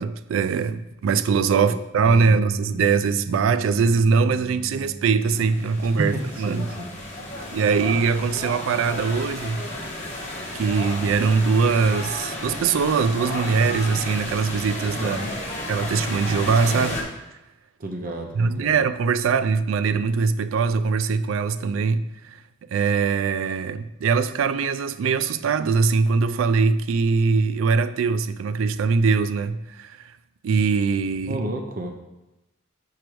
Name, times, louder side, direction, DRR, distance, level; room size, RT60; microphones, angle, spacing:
voice 1, 0.0-6.7 7.5-9.6 10.5-15.2 15.7-17.0 18.3-22.4 22.7-30.0 30.4-31.4, right 5 dB, 75° right, 0.3 m, -22 dB
sound 1, 2.1-14.3 14.6-14.9 17.1-17.2, equal, 15° left, 0.7 m, -40 dB
sound 2, 5.1-17.0, left 1 dB, 35° left, 1.2 m, -33 dB
voice 2, 6.0-6.9 15.0-15.3 17.8-18.8 31.3-31.9, right 1 dB, 45° right, 0.7 m, -31 dB
5.0 x 4.8 x 4.6 m
head